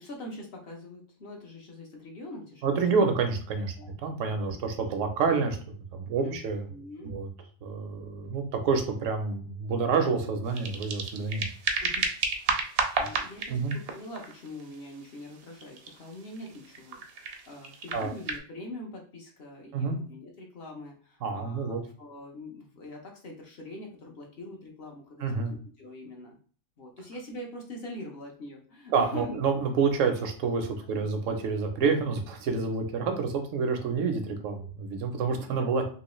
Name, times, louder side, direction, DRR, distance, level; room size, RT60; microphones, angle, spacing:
voice 1, 0.0-2.8 3.8-4.0 4.5-4.6 6.2-7.1 11.8-12.1 12.5-26.4 26.8-29.4 31.0-31.1 33.8-33.9, left 1 dB, 55° left, 0 dB, 0.9 m, -43 dB
voice 2, 2.6-3.7 4.0-5.6 5.9-6.6 7.0-7.3 7.6-11.5 13.5-13.7 17.9-18.1 19.7-20.0 21.2-21.8 25.2-25.5 28.9-35.9, right 5 dB, 80° right, 5 dB, 1.0 m, -28 dB
sound 1, 10.4-18.4, right 4 dB, 60° right, 0.7 m, -33 dB
3.1 x 2.8 x 3.0 m, 0.43 s
omnidirectional pair, 1.3 m